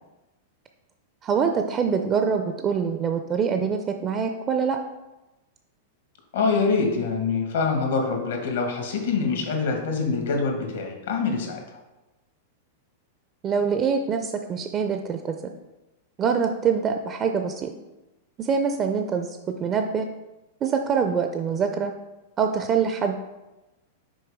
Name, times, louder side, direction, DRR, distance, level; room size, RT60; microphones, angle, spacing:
voice 1, 1.2-4.8 13.4-15.4 16.2-17.7 18.4-19.3 19.6-20.1 20.6-21.9 22.4-23.1, right 6 dB, 30° right, 6 dB, 0.4 m, -24 dB
voice 2, 6.3-11.6, left 4 dB, 75° left, 3 dB, 1.4 m, -25 dB
6.2 x 4.6 x 3.5 m, 1.0 s
hypercardioid pair, 105°, 0 cm